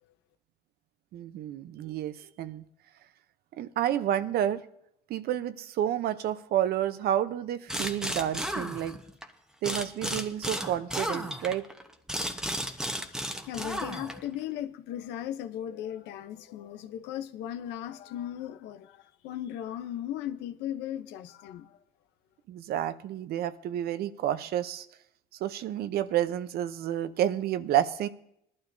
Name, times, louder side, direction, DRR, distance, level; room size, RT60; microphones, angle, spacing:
voice 1, 1.1-2.6 3.6-4.6 5.1-9.0 9.6-11.7 22.5-24.9 25.4-28.1, right 11 dB, 65° right, 0.7 m, -30 dB
sound 1, 7.7-9.3 9.6-14.3, equal, 5° right, 1.0 m, -33 dB
voice 2, 13.5-21.8, left 11 dB, 90° left, 0.8 m, -37 dB
19.5 x 12.0 x 2.7 m
cardioid pair, 110°, 17 cm